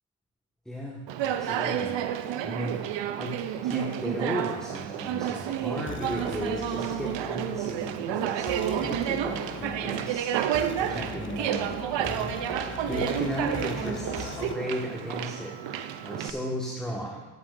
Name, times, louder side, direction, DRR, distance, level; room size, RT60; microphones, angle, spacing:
voice 1, 0.6-17.3, equal, ahead, -3 dB, 1.6 m, -36 dB
Conversation, 1.1-16.3, right 10 dB, 80° right, 0.7 m, -30 dB
sound 1, 5.2-14.6, left 7 dB, 30° left, 0.5 m, -41 dB
15.0 x 8.6 x 2.6 m, 1.1 s
supercardioid pair, 60°, 43 cm